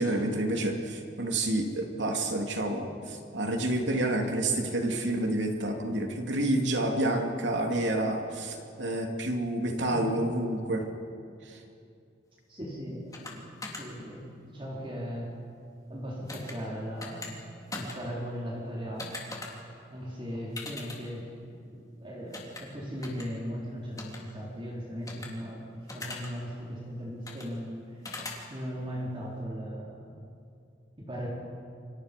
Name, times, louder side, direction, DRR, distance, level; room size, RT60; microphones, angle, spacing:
voice 1, 0.0-10.9 11.4-11.6, right 1 dB, 80° right, 3 dB, 2.9 m, -29 dB
voice 2, 12.5-15.3 15.9-17.4 17.7-19.2 19.7-21.3 21.7-28.0 28.5-30.1 31.0-31.3, equal, 30° right, -4 dB, 4.1 m, -38 dB
sound 1, 13.1-13.3 13.6-13.8 16.3-16.5 17.0-17.3 17.7-18.0 19.0-19.5 20.6-21.0 22.3-22.6 23.0-23.2 24.0-24.2 25.1-25.3 25.9-26.3 27.3-27.5 28.0-28.4, left 3 dB, 20° left, 3.2 m, -39 dB
29.5 x 24.5 x 5.4 m, 2.5 s
head